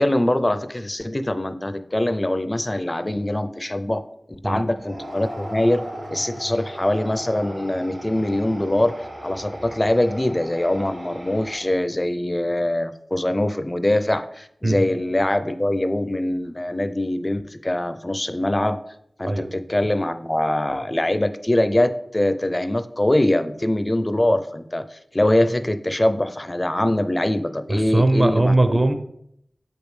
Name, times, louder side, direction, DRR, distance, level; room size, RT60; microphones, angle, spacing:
voice 1, 0.0-4.0 4.3-9.0 9.2-18.8 19.2-28.8, left 1 dB, 25° left, 11 dB, 0.4 m, -23 dB
sound 1, 4.7-11.9, right 1 dB, 85° right, 2.2 m, -37 dB
voice 2, 27.7-28.9, right 2 dB, 35° right, 8 dB, 0.6 m, -19 dB
6.7 x 5.1 x 3.2 m, 0.73 s
wide cardioid pair, 70°, 0 cm